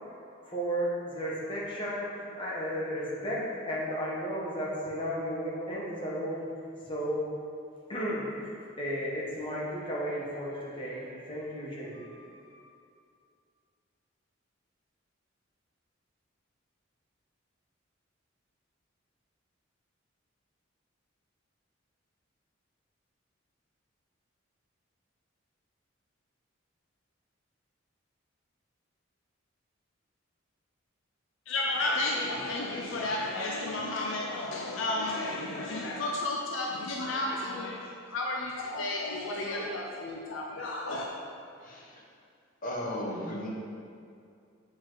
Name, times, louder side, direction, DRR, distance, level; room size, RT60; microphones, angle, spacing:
voice 1, 0.4-6.5 6.8-7.4 7.9-8.3 8.8-12.6, equal, 25° left, -6 dB, 1.4 m, -34 dB
voice 2, 31.5-41.1, left 2 dB, 70° left, -1 dB, 0.6 m, -32 dB
voice 3, 41.6-42.0 42.6-43.5, left 1 dB, 45° left, -3 dB, 1.2 m, -35 dB
7.3 x 5.1 x 3.9 m, 2.3 s
head